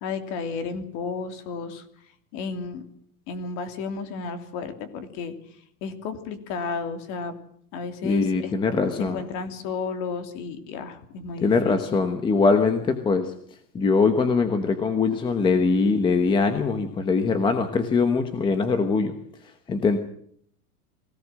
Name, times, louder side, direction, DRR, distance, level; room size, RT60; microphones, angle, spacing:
voice 1, 0.0-1.8 2.3-2.8 3.3-5.3 5.8-7.4 7.7-8.5 9.0-12.0, left 5 dB, 35° left, 9 dB, 3.2 m, -33 dB
voice 2, 8.0-9.2 11.4-13.3 13.7-19.1 19.7-20.0, left 4 dB, 10° left, 8 dB, 1.1 m, -22 dB
23.0 x 18.0 x 7.6 m, 0.66 s
supercardioid pair, 170°, 48 cm